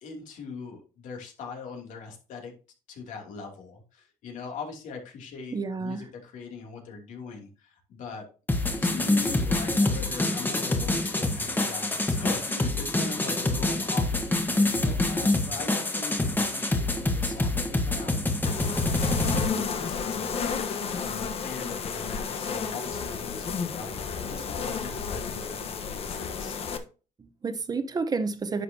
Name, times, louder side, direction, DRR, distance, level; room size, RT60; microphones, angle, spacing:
voice 1, 0.0-2.5 2.9-8.2 8.8-26.6, left 5 dB, 75° left, 2.9 m, -41 dB
voice 2, 5.5-6.1 27.2-28.6, right 4 dB, 30° right, 0.9 m, -30 dB
sound 1, 8.5-19.5, left 2 dB, 15° left, 1.4 m, -26 dB
sound 2, 18.4-26.8, left 6 dB, 50° left, 1.2 m, -32 dB
10.5 x 6.2 x 2.8 m
cardioid pair, 120°, 13 cm